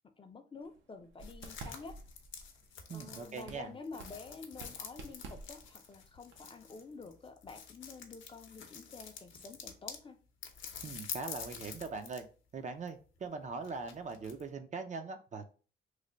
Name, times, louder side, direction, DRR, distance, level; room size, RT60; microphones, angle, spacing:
voice 1, 0.2-2.0 2.9-10.2, left 4 dB, 25° left, 7 dB, 0.5 m, -49 dB
sound 1, 0.6-7.3, right 3 dB, 75° right, 0.7 m, -52 dB
sound 2, 1.2-10.0 10.4-12.3 12.6-14.4, left 7 dB, 70° left, 0.7 m, -48 dB
voice 2, 2.9-3.7 10.8-12.2 12.5-15.5, right 4 dB, 35° right, 7 dB, 0.5 m, -41 dB
3.2 x 2.1 x 3.7 m, 0.37 s
cardioid pair, 90°, 20 cm